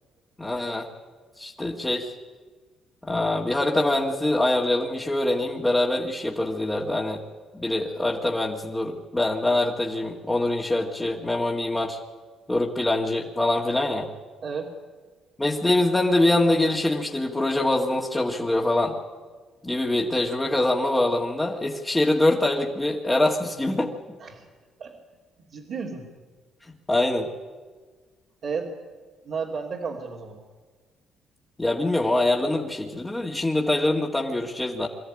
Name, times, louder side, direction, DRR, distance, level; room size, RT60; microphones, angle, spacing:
voice 1, 0.4-0.9 1.4-2.1 3.0-7.2 7.5-12.0 12.5-14.1 15.4-19.0 19.6-23.9 26.9-27.3 31.6-34.9, left 1 dB, 15° left, -2 dB, 2.1 m, -24 dB
voice 2, 14.4-14.7 24.2-24.5 24.8-25.0 25.5-26.1 28.4-28.7 29.2-30.4, right 5 dB, 65° right, -4 dB, 2.9 m, -32 dB
23.5 x 13.5 x 9.9 m, 1.5 s
cardioid pair, 80°, 0 cm